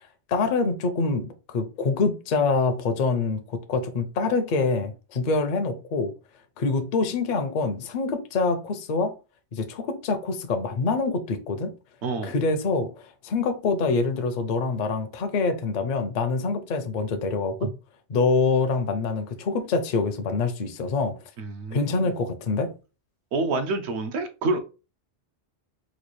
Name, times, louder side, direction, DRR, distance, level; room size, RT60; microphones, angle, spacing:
voice 1, 0.3-6.1 6.6-9.1 9.5-11.7 12.2-17.7 18.1-21.2 21.7-22.7, left 4 dB, 55° left, 0.6 m, -25 dB
voice 2, 12.0-12.3 17.6-17.7 21.4-22.1 23.3-24.6, right 3 dB, 75° right, 1.0 m, -28 dB
4.2 x 2.4 x 3.0 m
omnidirectional pair, 1.2 m